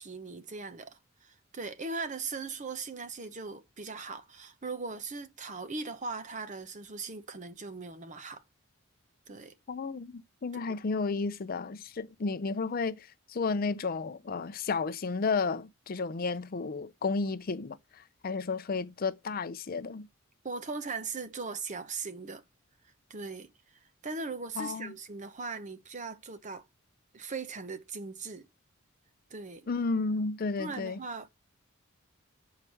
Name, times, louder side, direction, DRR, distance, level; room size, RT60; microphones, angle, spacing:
voice 1, 0.0-8.4 9.3-9.5 20.4-22.4 23.1-23.5 24.0-26.6 27.1-28.5 29.3-29.7 30.6-31.3, right 4 dB, 35° right, 0.9 m, -39 dB
voice 2, 9.7-20.1 24.6-24.9 29.7-31.0, left 4 dB, 45° left, 0.5 m, -32 dB
6.9 x 4.8 x 6.9 m
head